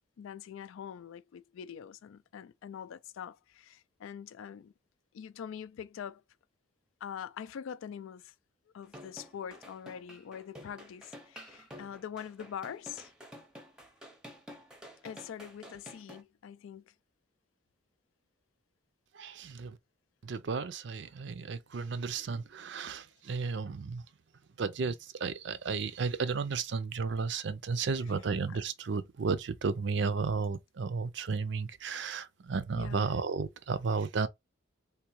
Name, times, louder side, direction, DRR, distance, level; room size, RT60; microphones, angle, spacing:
voice 1, 0.2-4.7 5.1-6.2 7.0-8.3 8.7-13.1 15.0-16.9 27.8-27.9 28.5-28.6 32.7-33.1, left 8 dB, 80° left, 0.3 m, -44 dB
sound 1, 8.8-16.2, equal, 5° right, 0.6 m, -50 dB
voice 2, 19.1-19.8 20.2-24.0 24.6-34.3, right 5 dB, 60° right, 0.4 m, -33 dB
3.5 x 2.8 x 3.0 m
head